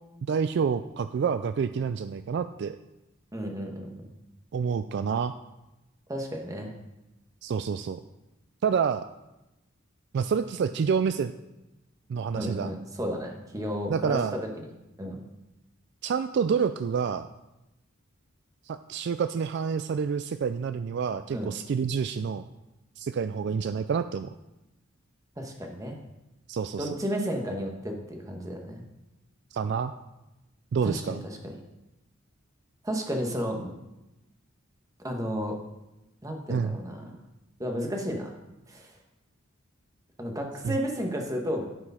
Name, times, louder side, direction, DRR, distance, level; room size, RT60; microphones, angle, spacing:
voice 1, 0.3-2.8 4.5-5.3 7.4-8.0 8.6-9.1 10.1-11.3 12.1-12.7 13.9-14.4 16.0-17.3 18.7-22.5 23.0-24.3 26.5-26.9 29.5-29.9 30.7-31.2 36.5-36.8 40.6-40.8, right 6 dB, 55° right, 11 dB, 0.3 m, -28 dB
voice 2, 3.3-3.9 6.1-6.7 12.3-14.7 15.0-15.2 21.3-21.5 25.4-26.0 26.8-28.8 30.8-31.5 32.8-33.7 35.0-35.6 36.2-37.2 37.6-38.3 38.7-38.9 40.2-41.6, equal, 15° right, 2 dB, 1.3 m, -32 dB
11.5 x 5.0 x 5.6 m, 0.97 s
head